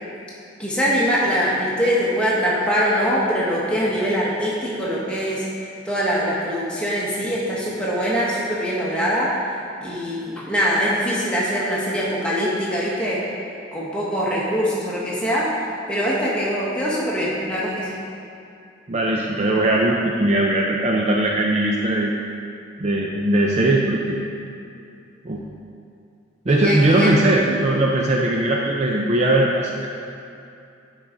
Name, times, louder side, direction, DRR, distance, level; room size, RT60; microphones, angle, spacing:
voice 1, 0.6-9.3 9.8-13.2 13.7-15.5 15.9-17.9 26.5-27.1, equal, 5° left, -7 dB, 1.2 m, -23 dB
voice 2, 18.9-22.1 22.8-24.2 25.2-25.4 26.5-29.9, right 1 dB, 35° right, -2 dB, 0.4 m, -19 dB
9.6 x 4.7 x 3.8 m, 2.6 s
head